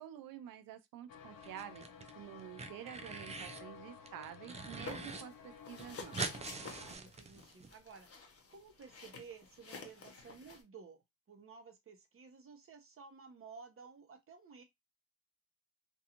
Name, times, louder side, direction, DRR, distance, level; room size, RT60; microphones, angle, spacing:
voice 1, 0.0-1.9 2.1-6.2, right 11 dB, 80° right, 0.5 m, -49 dB
sound 1, 1.1-7.0, left 6 dB, 85° left, 0.6 m, -54 dB
sound 2, 1.4-2.1 2.4-3.7 4.0-5.2 5.5-5.6 5.8-7.7, right 4 dB, 20° right, 0.4 m, -43 dB
sound 3, 4.9-5.3 5.6-10.6, left 4 dB, 45° left, 0.9 m, -50 dB
voice 2, 6.7-8.1 8.5-14.6, right 5 dB, 40° right, 0.8 m, -55 dB
2.5 x 2.3 x 2.8 m
cardioid pair, 85°, 34 cm